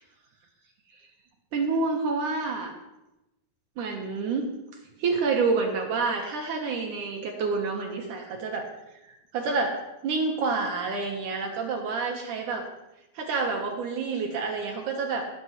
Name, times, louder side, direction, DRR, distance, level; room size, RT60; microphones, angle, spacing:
voice 1, 1.5-2.7 3.8-4.5 5.0-8.7 9.0-12.7 13.1-15.3, right 4 dB, 65° right, 1 dB, 2.3 m, -28 dB
18.5 x 9.0 x 3.1 m, 0.94 s
omnidirectional pair, 4.5 m